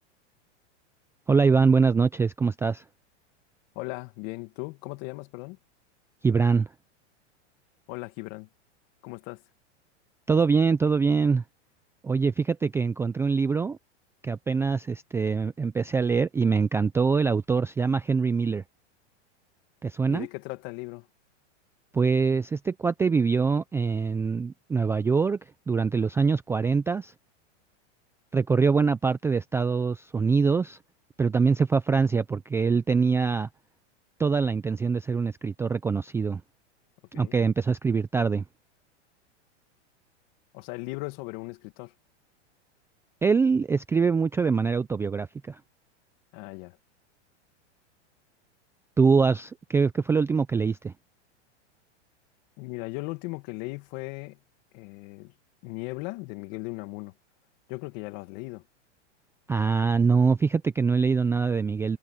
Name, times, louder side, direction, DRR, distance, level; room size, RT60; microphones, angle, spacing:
voice 1, 1.3-2.8 6.2-6.7 10.3-11.4 12.0-13.8 14.2-18.6 19.8-20.3 21.9-25.4 25.7-27.1 28.3-30.8 31.2-33.5 34.2-36.4 37.1-38.4 43.2-45.6 49.0-50.9 59.5-62.0, right 5 dB, 5° right, 0.4 m, -24 dB
voice 2, 3.8-5.6 7.9-8.5 9.0-9.4 20.1-21.1 37.1-37.4 40.5-41.9 46.3-46.8 52.6-54.4 54.7-55.3 55.6-57.1 57.7-58.6, left 24 dB, 50° left, 2.1 m, -37 dB
supercardioid pair, 135°, 35 cm